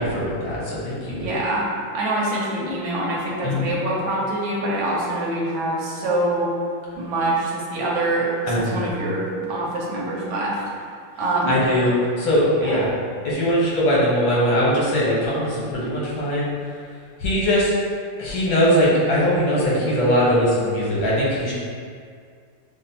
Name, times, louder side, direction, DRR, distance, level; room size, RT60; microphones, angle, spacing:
voice 1, 0.0-1.3 3.4-3.8 8.5-9.0 11.4-12.9 13.2-16.5 17.2-17.7 18.2-21.5, equal, 85° left, -7 dB, 2.0 m, -21 dB
voice 2, 1.2-1.7 1.9-6.5 7.0-10.6 11.2-11.9 12.6-12.8, right 2 dB, 85° right, -4 dB, 1.5 m, -25 dB
6.8 x 2.3 x 2.8 m, 2.1 s
omnidirectional pair, 2.1 m